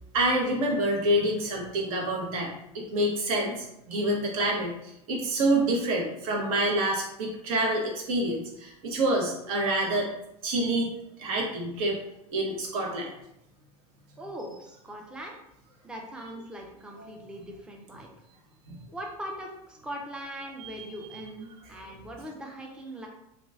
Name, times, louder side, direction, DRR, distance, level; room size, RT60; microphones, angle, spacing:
voice 1, 0.1-10.1 10.4-10.9 11.2-12.0 12.3-13.1 17.0-17.1 18.7-18.8 20.6-20.9 21.1-21.2, right 1 dB, 60° right, 0 dB, 0.9 m, -27 dB
voice 2, 14.2-15.3 15.8-18.1 18.9-23.1, right 1 dB, 5° right, 0 dB, 0.5 m, -40 dB
3.0 x 2.4 x 2.3 m, 0.80 s
hypercardioid pair, 90°, 20 cm